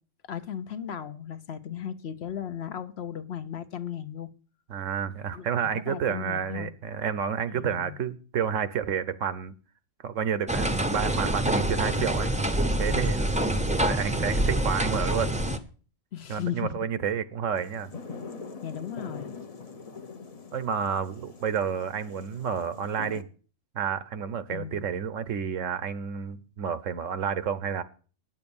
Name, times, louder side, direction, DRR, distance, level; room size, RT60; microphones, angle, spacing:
voice 1, 0.3-4.3 5.3-6.7 7.5-8.0 16.1-16.9 18.6-19.3 24.5-24.8, left 9 dB, 60° left, 1.0 m, -36 dB
voice 2, 4.7-9.5 10.0-12.3 12.8-13.3 13.8-15.4 16.3-17.9 20.5-23.3 23.7-27.8, right 7 dB, 85° right, 1.2 m, -30 dB
sound 1, 10.5-15.6, right 1 dB, 10° right, 0.5 m, -26 dB
sound 2, 17.6-23.2, left 4 dB, 35° left, 0.7 m, -43 dB
9.5 x 8.7 x 7.0 m
omnidirectional pair, 1.3 m